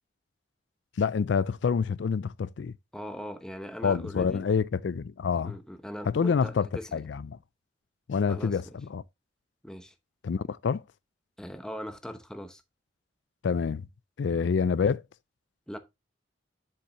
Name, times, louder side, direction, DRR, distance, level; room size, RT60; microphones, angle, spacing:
voice 1, 1.0-2.7 3.8-5.6 6.1-7.4 8.1-9.0 10.2-10.8 13.4-13.9 14.2-15.0, left 6 dB, 80° left, 0.4 m, -27 dB
voice 2, 2.9-4.4 5.4-7.0 8.3-8.8 9.6-9.9 11.4-12.6 15.7-15.8, equal, 5° left, 0.8 m, -40 dB
7.3 x 7.1 x 3.0 m
head